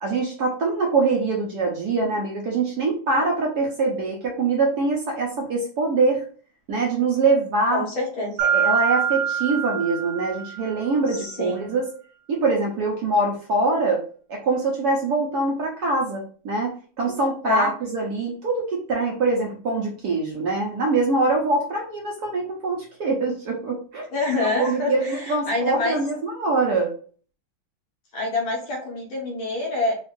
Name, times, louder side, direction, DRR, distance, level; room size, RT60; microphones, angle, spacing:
voice 1, 0.0-6.2 6.7-7.8 8.5-11.9 12.3-14.0 14.3-24.1 24.4-26.9, right 3 dB, 65° right, -1 dB, 1.0 m, -23 dB
voice 2, 7.7-8.4 11.1-11.7 17.4-17.7 24.1-26.0 28.1-29.9, left 2 dB, 70° left, 0 dB, 1.9 m, -26 dB
Mallet percussion, 8.4-10.9, right 8 dB, 80° right, 1.7 m, -25 dB
4.2 x 2.4 x 3.1 m, 0.42 s
omnidirectional pair, 2.3 m